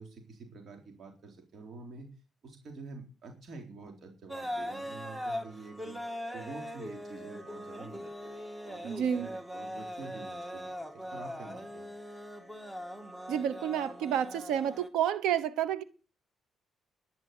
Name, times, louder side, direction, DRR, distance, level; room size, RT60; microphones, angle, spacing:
voice 1, 0.0-2.1 2.4-6.0 6.3-11.9, right 3 dB, 55° right, 4.0 m, -47 dB
sound 1, 4.3-14.9, equal, 10° right, 2.1 m, -41 dB
voice 2, 8.8-9.3 13.3-15.8, right 9 dB, 90° right, 1.0 m, -30 dB
11.0 x 11.0 x 6.8 m
cardioid pair, 90°, 0 cm